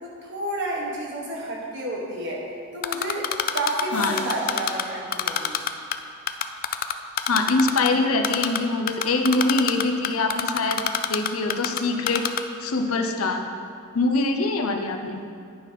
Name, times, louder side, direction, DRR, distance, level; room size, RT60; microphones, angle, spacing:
voice 1, 0.0-2.4 2.7-3.3 3.5-5.6, right 1 dB, 55° right, -3 dB, 1.5 m, -30 dB
Typing, 2.8-4.8 5.1-6.0 6.3-7.9 8.2-8.6 8.9-11.8 12.1-12.4, left 10 dB, 40° left, 0.3 m, -24 dB
sound 1, 3.9-6.6, equal, 5° right, 1.9 m, -44 dB
voice 2, 7.3-12.3 12.6-13.4 13.9-15.2, left 2 dB, 75° left, 5 dB, 0.6 m, -24 dB
9.6 x 4.0 x 5.2 m, 2.3 s
head